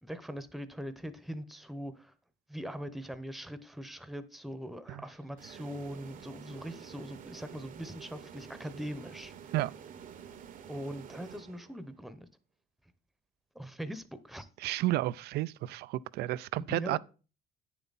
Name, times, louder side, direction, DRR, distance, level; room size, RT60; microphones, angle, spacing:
voice 1, 0.0-2.1 2.5-9.3 10.7-12.3 13.5-14.5 16.6-17.0, equal, ahead, 0.8 m, -41 dB
sound 1, 5.4-12.0, right 8 dB, 50° right, 0.9 m, -49 dB
voice 2, 14.6-17.0, right 16 dB, 75° right, 0.4 m, -31 dB
9.1 x 7.0 x 4.1 m
cardioid pair, 110°, 17 cm